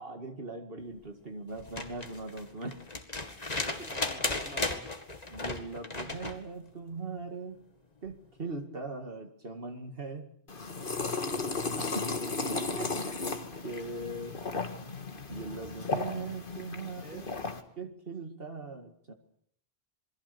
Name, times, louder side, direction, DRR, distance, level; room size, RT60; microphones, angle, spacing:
voice 1, 0.0-2.9 5.3-7.6 8.0-10.3 11.8-12.2 12.5-13.3 13.6-14.4 15.3-17.2 17.8-19.1, right 3 dB, 65° right, 6 dB, 2.3 m, -40 dB
sound 1, 1.6-6.4 8.1-8.2, left 2 dB, 40° left, 2.1 m, -35 dB
voice 2, 3.8-4.9 11.0-11.5 16.8-17.8, equal, 10° right, 3 dB, 3.1 m, -50 dB
sound 2, 10.5-17.6, left 3 dB, 55° left, 2.0 m, -35 dB
27.5 x 21.5 x 6.9 m, 0.65 s
omnidirectional pair, 1.0 m